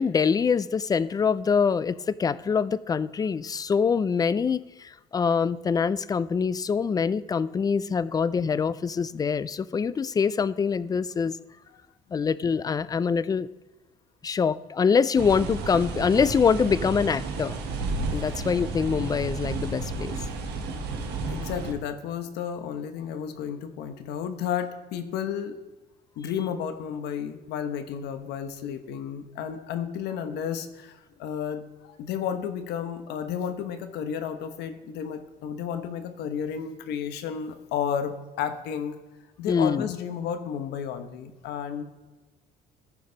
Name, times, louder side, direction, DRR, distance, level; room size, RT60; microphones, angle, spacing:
voice 1, 0.0-11.4 12.1-13.5 14.2-17.6 18.1-20.2 39.5-39.9, left 6 dB, 20° left, 17 dB, 0.3 m, -24 dB
sound 1, 15.1-21.7, right 3 dB, 80° right, 1.4 m, -32 dB
voice 2, 21.3-25.6 26.2-39.0 39.4-41.8, left 8 dB, 80° left, 9 dB, 1.0 m, -32 dB
14.5 x 5.4 x 3.9 m, 1.2 s
cardioid pair, 110°, 17 cm